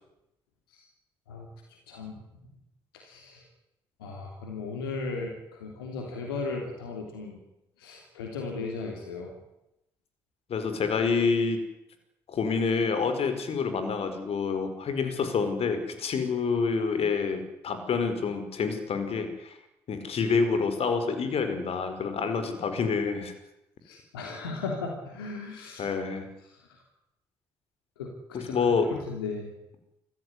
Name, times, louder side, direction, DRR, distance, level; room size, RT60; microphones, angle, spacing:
voice 1, 1.9-2.2 2.9-3.4 4.0-7.4 7.8-9.3 23.8-25.8 26.5-26.6 28.0-28.1 28.5-29.5, left 4 dB, 85° left, 2 dB, 3.2 m, -36 dB
voice 2, 10.5-11.6 12.3-19.5 19.9-23.3 25.8-26.3 28.3-28.9, left 5 dB, 55° left, 8 dB, 4.9 m, -27 dB
25.0 x 15.5 x 9.9 m, 0.87 s
hypercardioid pair, 45°, 12 cm